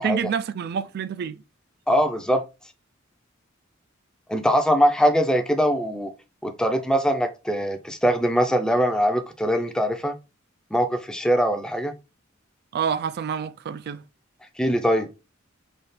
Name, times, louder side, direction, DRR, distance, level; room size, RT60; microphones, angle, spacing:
voice 1, 0.0-1.4 12.7-14.0, right 7 dB, 50° right, 0.3 m, -27 dB
voice 2, 1.9-2.4 4.3-6.1 6.4-10.2 10.7-11.9 14.6-15.1, equal, 5° left, 0.5 m, -22 dB
4.0 x 2.4 x 3.4 m
head